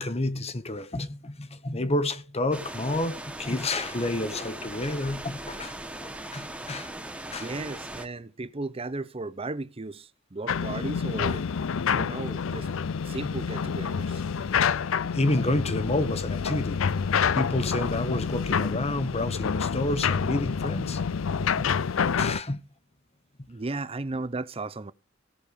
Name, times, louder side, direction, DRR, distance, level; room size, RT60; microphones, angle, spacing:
voice 1, 0.0-6.9 7.3-7.5 15.1-16.8 17.3-21.0 21.4-21.7 22.0-22.6, left 2 dB, 30° left, 1.1 m, -29 dB
sound 1, 2.5-8.1, right 1 dB, 5° right, 1.4 m, -39 dB
voice 2, 7.3-11.4 11.9-12.7 13.1-14.2 23.5-24.9, right 2 dB, 30° right, 0.7 m, -35 dB
sound 2, 10.5-22.4, left 6 dB, 80° left, 0.5 m, -28 dB
16.5 x 6.6 x 5.3 m
head